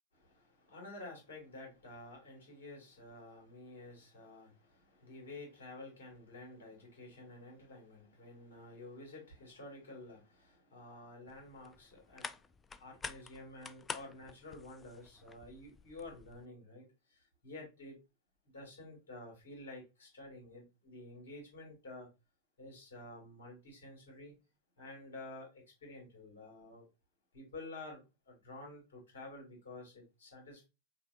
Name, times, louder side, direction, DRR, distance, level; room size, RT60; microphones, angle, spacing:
voice 1, 0.1-12.4 12.8-18.0 18.5-22.1 22.6-24.3 24.8-26.9 27.3-30.6, left 2 dB, 65° left, 2.1 m, -51 dB
sound 1, 11.3-16.5, left 5 dB, 15° left, 0.3 m, -49 dB
5.4 x 2.7 x 2.5 m
figure-of-eight pair, 90°, 0 cm